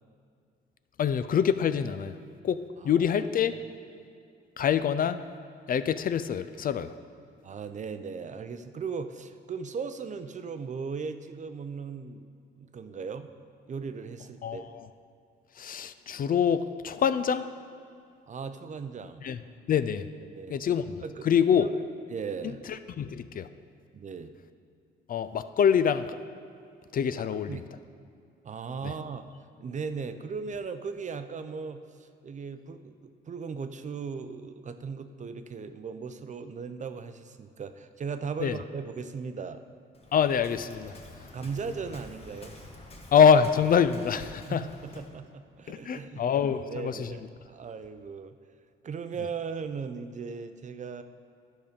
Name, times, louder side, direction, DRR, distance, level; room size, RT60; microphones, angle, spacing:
voice 1, 1.0-2.2 2.4-2.6 2.8-3.6 4.6-5.2 5.7-6.9 14.4-14.9 15.6-17.4 19.2-19.4 19.7-20.1 20.5-21.0 21.2-21.7 22.7-23.5 25.1-26.1 26.9-27.6 28.8-28.9 38.4-38.6 40.1-40.9 43.1-44.7 45.7-47.1, left 7 dB, 45° left, 12 dB, 0.4 m, -25 dB
voice 2, 2.8-3.2 7.4-12.3 12.6-13.3 13.7-14.7 18.3-19.2 20.3-20.6 21.0-21.3 22.1-22.7 23.9-24.3 27.2-27.7 28.4-29.2 29.6-39.6 41.3-42.6 44.4-48.4 48.8-51.0, right 5 dB, 40° right, 9 dB, 0.5 m, -38 dB
Waves surf, 39.9-45.2, left 1 dB, 30° left, 1.3 m, -48 dB
11.0 x 5.4 x 5.1 m, 2.4 s
cardioid pair, 90°, 20 cm